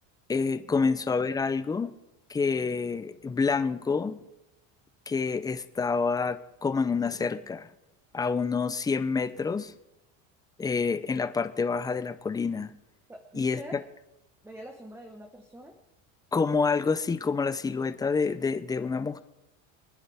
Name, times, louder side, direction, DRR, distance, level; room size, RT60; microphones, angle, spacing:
voice 1, 0.3-1.9 2.3-4.2 5.1-7.7 8.1-9.7 10.6-12.7 13.3-13.8 16.3-19.2, left 4 dB, 10° left, 12 dB, 0.4 m, -28 dB
voice 2, 13.1-13.8 14.4-15.7, right 1 dB, 5° right, 3 dB, 1.2 m, -45 dB
27.5 x 9.7 x 3.5 m, 0.94 s
cardioid pair, 135°, 37 cm